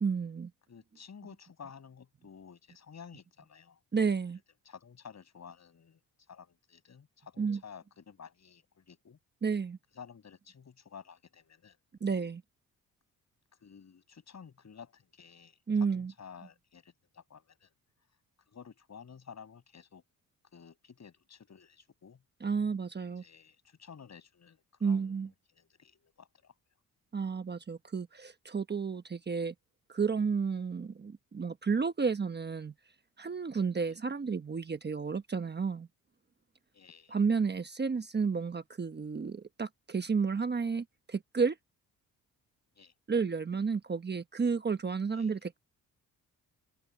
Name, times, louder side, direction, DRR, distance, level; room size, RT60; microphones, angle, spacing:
voice 1, 0.0-0.5 3.9-4.4 7.4-7.6 9.4-9.8 12.0-12.4 15.7-16.1 22.4-23.2 24.8-25.3 27.1-29.5 29.9-32.7 33.2-35.9 37.1-41.6 43.1-45.6, right 5 dB, 30° right, 1.1 m, -31 dB
voice 2, 0.7-3.8 4.6-6.0 6.3-9.2 9.9-11.8 13.6-17.7 18.5-20.0 20.5-22.2 23.2-26.5 33.9-34.0 36.7-37.2 42.7-42.9 45.1-45.3, left 6 dB, 45° left, 6.1 m, -52 dB
cardioid pair, 85°, 36 cm